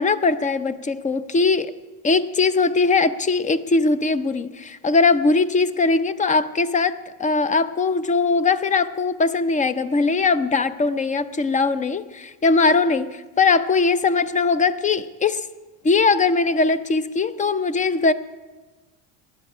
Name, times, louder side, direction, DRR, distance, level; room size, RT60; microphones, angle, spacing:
voice 1, 0.0-1.7 2.0-13.1 13.4-15.5 15.8-18.1, left 4 dB, 20° left, 0.4 m, -20 dB
18.5 x 12.0 x 4.9 m
supercardioid pair, 110°, 42 cm